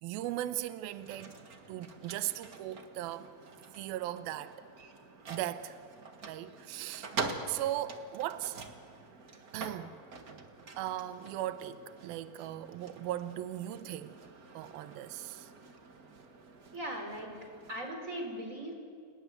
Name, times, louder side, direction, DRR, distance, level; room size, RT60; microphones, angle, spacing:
voice 1, 0.0-1.4 1.7-3.3 3.7-4.6 5.3-5.8 6.3-7.1 7.5-8.6 9.5-10.0 10.8-14.2 14.5-15.5, right 13 dB, 80° right, 2.7 m, -38 dB
sound 1, 0.8-17.9, right 4 dB, 50° right, 1.0 m, -46 dB
voice 2, 16.7-17.4 17.7-18.7, right 1 dB, 20° right, 4.4 m, -39 dB
30.0 x 19.0 x 9.6 m
omnidirectional pair, 4.3 m